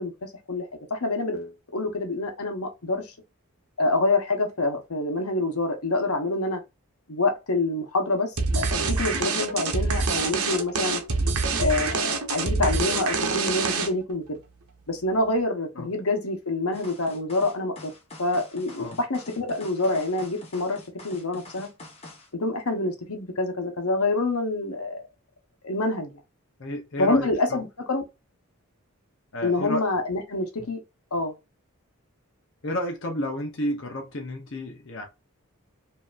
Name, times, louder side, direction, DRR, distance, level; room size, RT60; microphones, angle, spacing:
voice 1, 0.0-3.1 3.8-6.6 7.1-11.0 11.6-14.4 14.9-17.9 18.2-21.7 22.3-25.0 25.6-26.2 27.0-28.0 29.4-30.8 31.1-31.3, left 2 dB, 80° left, 1.0 m, -27 dB
sound 1, 8.4-14.1, right 4 dB, 85° right, 0.9 m, -25 dB
sound 2, 16.7-22.3, left 1 dB, 30° left, 1.0 m, -45 dB
voice 2, 26.6-27.6 29.3-29.9 30.6-30.7 32.6-35.1, equal, 55° left, 0.7 m, -31 dB
5.0 x 2.8 x 2.4 m
head